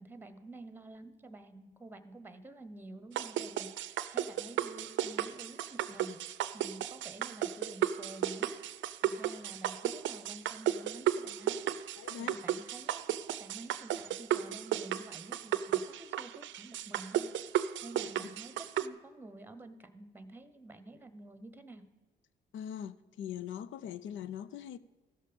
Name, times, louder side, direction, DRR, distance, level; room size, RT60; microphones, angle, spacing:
voice 1, 0.0-6.2 6.5-8.5 9.0-11.6 12.2-13.0 13.4-17.3 17.8-21.9, right 2 dB, 10° right, 1.0 m, -50 dB
sound 1, 3.2-18.9, right 11 dB, 70° right, 0.5 m, -34 dB
voice 2, 12.0-12.4 22.5-24.8, left 9 dB, 75° left, 0.6 m, -41 dB
15.0 x 6.6 x 5.2 m
cardioid pair, 90°, 20 cm